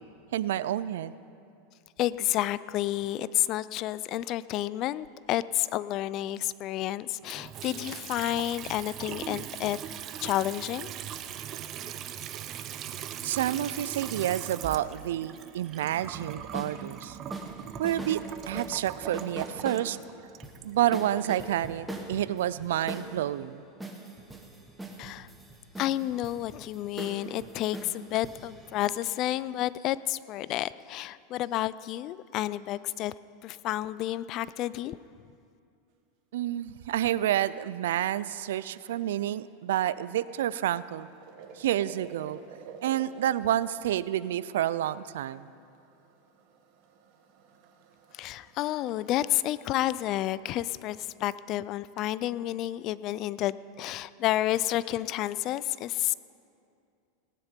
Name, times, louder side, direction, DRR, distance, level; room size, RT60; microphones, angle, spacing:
voice 1, 0.3-1.1 13.2-17.2 17.8-20.0 20.6-23.6 36.3-41.1 41.6-42.4 42.8-45.5, right 12 dB, 85° right, 17 dB, 0.4 m, -29 dB
voice 2, 2.0-9.8 10.2-10.9 25.0-25.3 25.8-33.1 33.4-35.0 48.1-56.1, left 14 dB, 40° left, 18 dB, 0.3 m, -30 dB
Water tap faucet / Sink (filling or washing) / Trickle dribble, 7.2-21.3, right 10 dB, 35° right, 0.6 m, -40 dB
sound 1, 16.1-16.8 17.3-18.2 18.4-19.9 20.4-20.6 20.9-23.1 23.8-29.4, right 2 dB, 5° right, 1.4 m, -41 dB
sound 2, 40.9-50.4, right 5 dB, 55° right, 1.4 m, -52 dB
18.0 x 10.0 x 5.2 m, 2.5 s
supercardioid pair, 140°, 0 cm